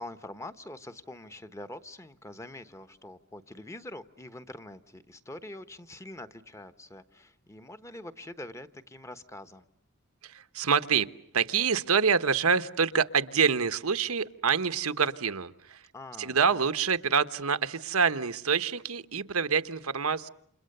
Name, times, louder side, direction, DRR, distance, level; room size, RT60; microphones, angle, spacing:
voice 1, 0.0-9.6 15.9-16.4, left 1 dB, 15° left, 10 dB, 1.1 m, -44 dB
voice 2, 10.2-11.1 11.3-15.8 16.2-20.3, right 6 dB, 85° right, 11 dB, 1.2 m, -26 dB
30.0 x 28.0 x 6.7 m, 0.71 s
head